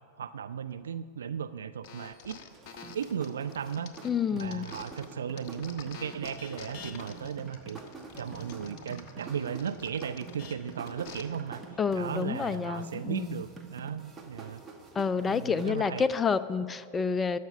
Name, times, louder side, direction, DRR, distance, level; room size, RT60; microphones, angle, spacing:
voice 1, 0.0-2.4 2.9-3.9 4.3-7.8 8.2-11.6 12.0-14.6 15.3-16.1, right 7 dB, 65° right, 13 dB, 0.4 m, -36 dB
sound 1, 1.8-5.1 5.4-11.2, left 6 dB, 40° left, 1.2 m, -48 dB
sound 2, 2.5-16.1, right 4 dB, 15° right, 1.6 m, -47 dB
voice 2, 4.0-4.7 11.8-13.4 15.0-17.4, left 6 dB, 15° left, 14 dB, 0.5 m, -29 dB
15.0 x 6.0 x 9.7 m, 2.1 s
figure-of-eight pair, 90°, 0 cm